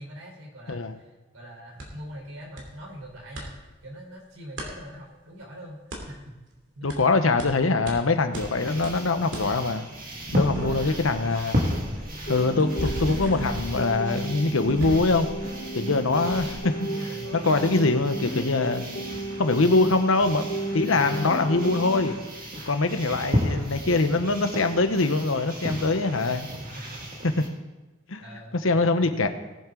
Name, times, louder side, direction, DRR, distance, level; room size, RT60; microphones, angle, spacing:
voice 1, 0.0-5.8 6.1-6.4 6.7-7.1 10.6-11.1 16.1-16.2 16.8-18.2 21.1-21.2 26.6-27.0 28.2-29.1, equal, 90° right, -1 dB, 4.3 m, -42 dB
sound 1, 1.8-1.9 2.6-2.7 3.0-3.5 4.6-4.7 5.9-6.0 6.9-7.0 7.4-7.5 7.9-8.0 8.3-8.5 8.8-9.0 9.3-9.5 9.9-15.9 16.3-16.6, equal, 65° right, 2.8 m, -36 dB
voice 2, 6.8-9.9 10.3-11.8 12.3-15.3 15.7-16.7 17.4-18.8 19.4-22.2 22.7-26.5 27.2-27.3 28.1-28.2 28.6-29.3, left 3 dB, 85° left, 8 dB, 1.0 m, -23 dB
sound 2, 8.3-27.5, equal, 45° right, 2.2 m, -34 dB
sound 3, 12.3-22.3, right 1 dB, 55° left, 2.6 m, -34 dB
19.5 x 7.6 x 3.9 m, 1.1 s
head